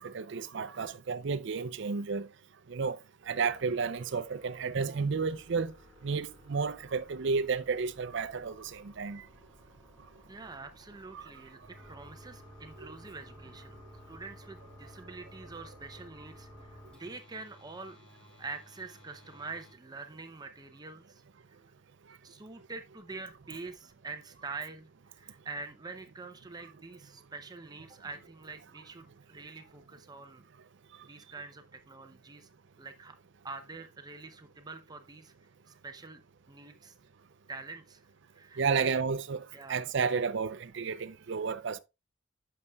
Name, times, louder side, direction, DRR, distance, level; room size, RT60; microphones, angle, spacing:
voice 1, 0.0-2.3 2.7-3.0 3.3-5.7 6.0-9.2 11.1-11.3 12.8-12.9 38.6-41.8, right 5 dB, 65° right, 0.5 m, -32 dB
sound 1, 3.2-19.7, left 1 dB, 5° left, 4.6 m, -55 dB
voice 2, 10.3-11.6 11.9-13.8 14.1-18.0 18.4-21.2 22.2-30.5 31.0-32.5 32.8-33.2 33.4-35.3 35.7-37.0 37.5-38.1 38.3-39.0 39.5-39.9, right 3 dB, 20° right, 0.6 m, -45 dB
11.0 x 6.6 x 2.3 m
head